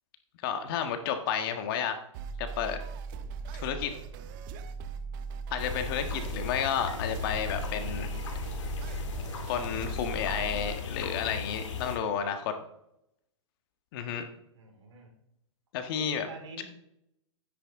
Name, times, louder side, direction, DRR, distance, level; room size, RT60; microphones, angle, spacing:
voice 1, 0.4-2.0 2.4-2.8 3.5-3.9 5.5-8.1 9.4-12.5 13.9-14.3 15.7-16.3 16.6-16.7, left 8 dB, 45° left, 7 dB, 1.6 m, -31 dB
sound 1, 2.1-10.7, right 5 dB, 40° right, 0.9 m, -39 dB
sound 2, 5.6-12.0, left 5 dB, 65° left, 2.8 m, -37 dB
voice 2, 14.5-15.1 16.0-16.6, right 4 dB, 65° right, 2 dB, 4.0 m, -46 dB
13.0 x 10.0 x 3.7 m, 0.78 s
hypercardioid pair, 135°, 16 cm